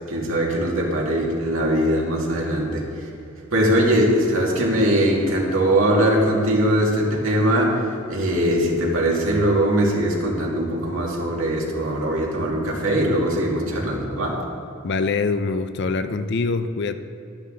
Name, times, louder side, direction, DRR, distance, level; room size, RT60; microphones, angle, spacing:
voice 1, 0.0-3.1 3.5-7.8 8.1-14.4, right 1 dB, 75° right, -2 dB, 2.2 m, -21 dB
voice 2, 14.8-16.9, left 4 dB, 55° left, 10 dB, 0.5 m, -24 dB
12.0 x 11.0 x 3.9 m, 2.4 s
head